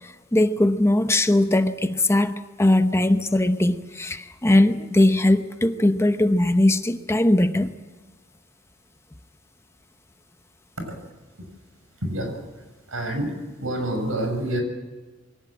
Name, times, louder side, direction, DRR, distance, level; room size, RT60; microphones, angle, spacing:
voice 1, 0.0-7.7, left 1 dB, 15° left, 9 dB, 0.8 m, -20 dB
voice 2, 12.0-13.3 13.6-14.6, right 1 dB, 80° right, 5 dB, 6.6 m, -28 dB
23.0 x 17.5 x 8.8 m, 1.3 s
head